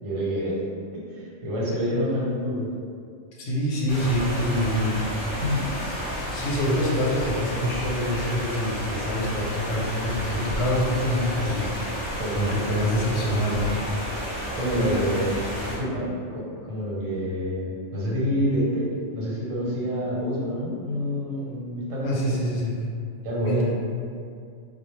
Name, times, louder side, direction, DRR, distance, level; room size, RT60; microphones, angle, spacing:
voice 1, 0.0-0.5 1.1-2.7 5.4-5.7 12.2-12.5 14.5-15.4 15.7-22.4 23.2-23.6, equal, 85° right, -6 dB, 1.1 m, -27 dB
voice 2, 3.4-5.1 6.3-11.9 12.3-13.8 14.1-14.4 14.7-14.9 22.0-22.7 23.4-23.6, equal, 65° left, -5 dB, 0.7 m, -26 dB
sound 1, 3.9-15.8, equal, 20° right, 0.6 m, -31 dB
2.1 x 2.0 x 3.0 m, 2.3 s
omnidirectional pair, 1.3 m